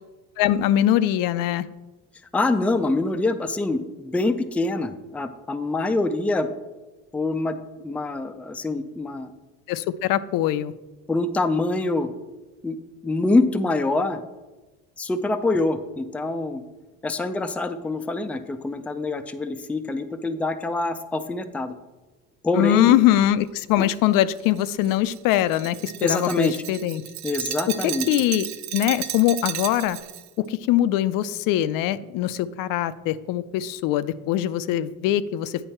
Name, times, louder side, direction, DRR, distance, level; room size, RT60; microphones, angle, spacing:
voice 1, 0.4-1.7 9.7-10.7 22.5-27.0 28.1-30.0 30.4-35.7, left 12 dB, 75° left, 15 dB, 0.5 m, -22 dB
voice 2, 2.3-6.5 7.1-9.3 11.1-12.1 12.6-12.8 13.0-14.2 15.0-16.6 17.0-21.7 22.4-22.9 23.8-23.9 26.0-26.5 27.2-28.1, left 2 dB, 5° left, 9 dB, 0.3 m, -25 dB
Glass, 23.9-30.3, right 12 dB, 55° right, 0.6 m, -34 dB
8.9 x 5.4 x 4.4 m, 1.2 s
cardioid pair, 125°, 34 cm